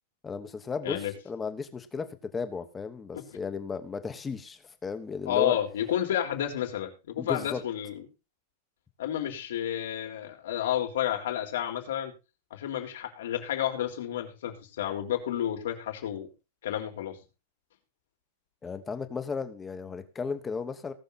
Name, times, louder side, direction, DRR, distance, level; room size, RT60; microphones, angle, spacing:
voice 1, 0.2-5.6 7.2-7.6 18.6-20.9, left 5 dB, 10° left, 10 dB, 1.2 m, -35 dB
voice 2, 5.3-8.0 9.0-12.1 12.5-16.3 16.6-17.2, left 11 dB, 85° left, 3 dB, 3.9 m, -31 dB
18.5 x 6.8 x 4.1 m, 0.29 s
supercardioid pair, 170°, 0 cm